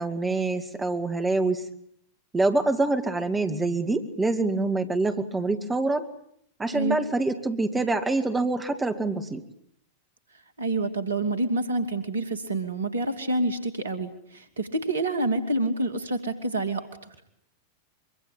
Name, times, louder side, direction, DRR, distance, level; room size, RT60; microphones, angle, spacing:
voice 1, 0.0-1.7 2.3-6.1 6.6-9.4, right 2 dB, 10° right, 7 dB, 2.3 m, -25 dB
voice 2, 10.6-16.9, right 2 dB, 70° right, 10 dB, 2.7 m, -27 dB
24.5 x 24.5 x 8.8 m, 0.70 s
figure-of-eight pair, 90°, 0 cm